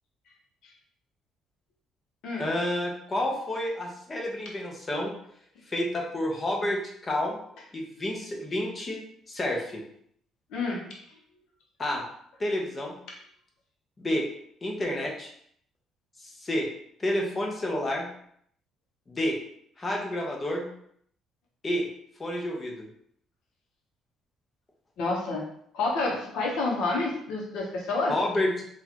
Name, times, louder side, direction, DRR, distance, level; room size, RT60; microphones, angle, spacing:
voice 1, 2.4-5.1 5.7-7.4 7.7-9.0 9.3-9.8 11.8-12.1 12.4-13.0 14.0-14.2 14.6-15.3 16.2-16.7 17.0-18.1 19.1-19.4 19.8-20.7 21.6-21.8 22.2-22.7 28.1-28.7, left 1 dB, 25° left, 0 dB, 0.9 m, -29 dB
voice 2, 10.5-10.8 25.0-25.4 25.7-28.1, left 3 dB, 80° left, -2 dB, 0.9 m, -28 dB
4.1 x 2.4 x 2.9 m, 0.66 s
cardioid pair, 110°, 0 cm